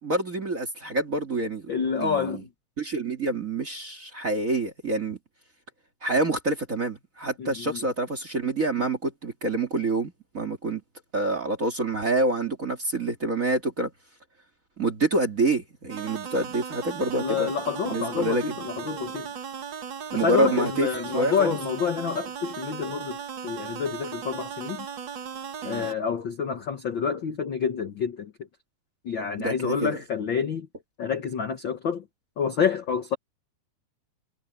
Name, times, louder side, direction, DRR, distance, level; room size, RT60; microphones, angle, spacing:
voice 1, 0.0-1.7 2.0-2.4 2.8-5.2 6.0-10.8 11.1-13.9 14.8-17.5 17.8-18.4 20.1-20.9 21.1-21.6 25.6-25.9 29.4-30.0, right 2 dB, 30° right, 1.7 m, -27 dB
voice 2, 1.7-2.5 7.4-7.8 17.1-19.3 20.1-23.2 23.4-24.9 25.6-28.3 29.0-30.7 31.0-32.0 32.4-33.1, left 6 dB, 80° left, 1.0 m, -28 dB
sound 1, 15.9-25.9, right 7 dB, 55° right, 1.3 m, -37 dB
omnidirectional pair, 4.0 m